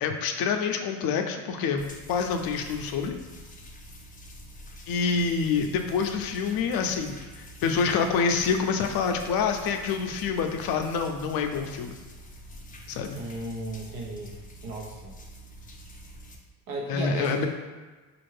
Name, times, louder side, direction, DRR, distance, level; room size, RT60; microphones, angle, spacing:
voice 1, 0.0-1.8 2.1-3.1 4.9-12.0 12.9-13.2 16.9-17.5, left 5 dB, 70° left, 5 dB, 0.5 m, -27 dB
sound 1, 1.8-16.4, equal, 20° left, 0.5 m, -46 dB
voice 2, 13.1-14.3 14.6-15.1 16.7-17.5, right 1 dB, 90° right, -2 dB, 0.9 m, -35 dB
4.2 x 2.5 x 3.2 m, 1.3 s
cardioid pair, 100°, 37 cm